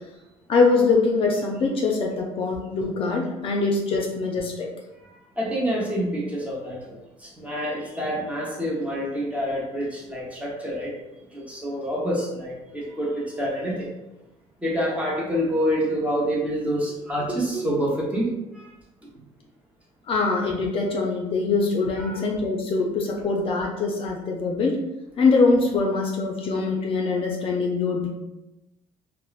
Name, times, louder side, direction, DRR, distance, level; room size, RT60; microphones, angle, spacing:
voice 1, 0.5-4.7 20.1-24.8 25.2-28.1, left 3 dB, 45° left, 0 dB, 0.4 m, -23 dB
voice 2, 5.0-11.0 11.3-13.9 14.6-18.7 19.0-19.1 22.0-22.2, equal, 10° right, -5 dB, 0.8 m, -27 dB
2.8 x 2.0 x 2.3 m, 0.96 s
cardioid pair, 115°, 13 cm